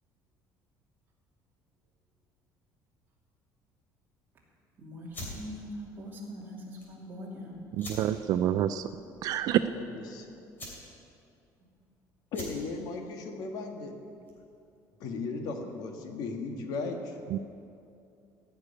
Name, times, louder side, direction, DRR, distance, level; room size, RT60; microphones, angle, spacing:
voice 1, 4.8-7.6, equal, 25° right, -4 dB, 2.9 m, -42 dB
sound 1, 5.1-14.6, left 1 dB, 25° left, 3.1 m, -47 dB
voice 2, 7.8-8.9 9.2-9.6 17.3-17.4, right 12 dB, 55° right, 11 dB, 0.4 m, -27 dB
voice 3, 9.6-10.3 12.3-13.9 15.0-17.2, left 3 dB, 60° left, 4 dB, 1.6 m, -36 dB
15.5 x 6.6 x 9.6 m, 2.5 s
cardioid pair, 170°, 8 cm